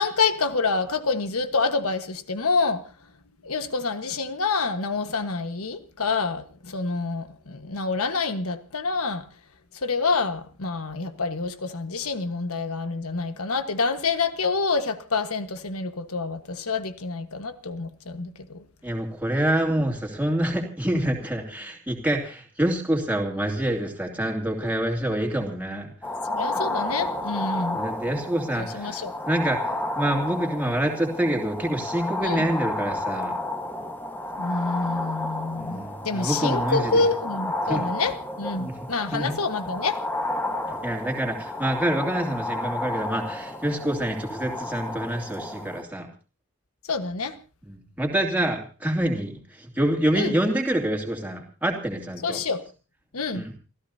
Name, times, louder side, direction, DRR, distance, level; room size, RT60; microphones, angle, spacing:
voice 1, 0.0-2.8 3.4-9.2 9.8-18.6 26.3-27.8 28.6-29.1 32.2-32.5 34.4-40.0 46.9-47.3 50.1-50.3 52.2-52.6 53.1-53.4, left 4 dB, 80° left, 1.4 m, -27 dB
voice 2, 18.8-25.9 27.7-33.3 35.6-37.0 37.7-37.8 38.6-38.8 39.1-39.3 40.7-46.1 47.6-52.4 53.3-53.5, right 1 dB, 5° right, 2.7 m, -27 dB
sound 1, 26.0-45.8, left 1 dB, 10° left, 1.4 m, -31 dB
29.5 x 14.5 x 2.8 m
head